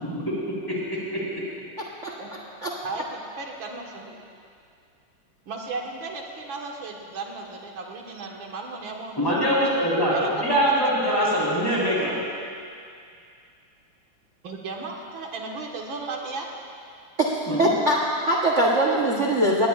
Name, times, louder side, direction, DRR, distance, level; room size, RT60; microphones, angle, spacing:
voice 1, 0.7-1.2 9.2-10.1 10.4-12.2 17.5-17.7, equal, 10° left, -7 dB, 4.2 m, -23 dB
voice 2, 1.8-2.1 2.6-2.7 17.2-18.0 18.2-19.7, right 1 dB, 45° right, -3 dB, 1.2 m, -22 dB
voice 3, 2.8-4.1 5.5-9.2 10.1-11.2 14.4-16.5, right 3 dB, 70° right, 0 dB, 2.2 m, -35 dB
20.0 x 18.5 x 2.5 m, 2.4 s
omnidirectional pair, 2.2 m